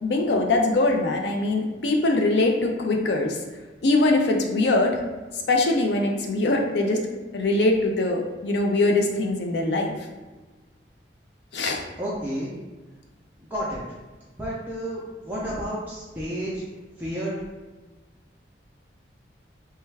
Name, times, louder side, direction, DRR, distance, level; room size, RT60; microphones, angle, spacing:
voice 1, 0.0-3.4 3.8-5.0 5.5-7.1 7.3-9.9 11.5-11.8, left 2 dB, 70° left, 1 dB, 0.5 m, -22 dB
voice 2, 12.0-12.5 13.4-13.8 14.4-16.6 17.0-17.4, equal, 10° right, -7 dB, 0.4 m, -31 dB
3.2 x 2.2 x 3.2 m, 1.3 s
head